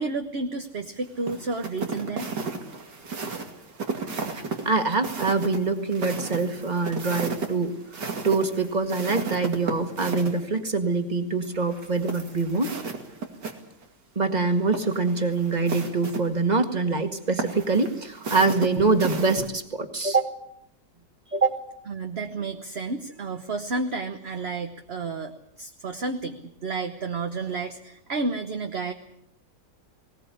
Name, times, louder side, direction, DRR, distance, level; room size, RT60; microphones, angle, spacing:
voice 1, 0.0-2.3 21.3-21.4 21.9-28.9, right 3 dB, 40° right, 5 dB, 1.3 m, -31 dB
sound 1, 1.2-10.4 11.7-13.5 13.8-13.9 14.6-16.2 17.4-19.5, right 4 dB, 90° right, 3.0 m, -34 dB
voice 2, 4.3-12.7 14.2-20.3 21.3-21.6, right 4 dB, 25° right, 6 dB, 1.9 m, -25 dB
19.5 x 19.5 x 8.5 m, 0.75 s
omnidirectional pair, 1.8 m